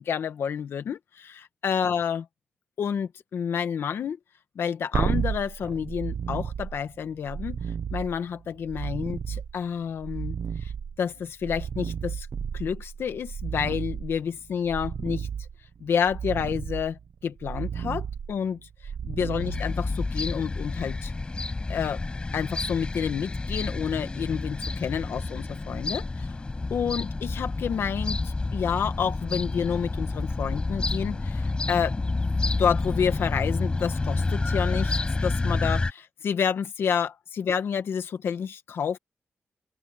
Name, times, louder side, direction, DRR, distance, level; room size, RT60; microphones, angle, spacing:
voice 1, 0.0-2.3 2.8-4.2 4.5-7.6 7.9-10.3 10.6-10.7 11.0-12.3 12.5-15.3 15.8-18.6 19.0-21.1 21.7-22.0 22.3-26.3 26.7-32.0 32.6-39.0, left 7 dB, 80° left, 1.5 m, -29 dB
sound 1, 4.9-20.2 23.4-23.5, right 7 dB, 60° right, 1.1 m, -33 dB
sound 2, 19.4-35.9, left 3 dB, 25° left, 7.2 m, -29 dB
open air
wide cardioid pair, 130°, 4 cm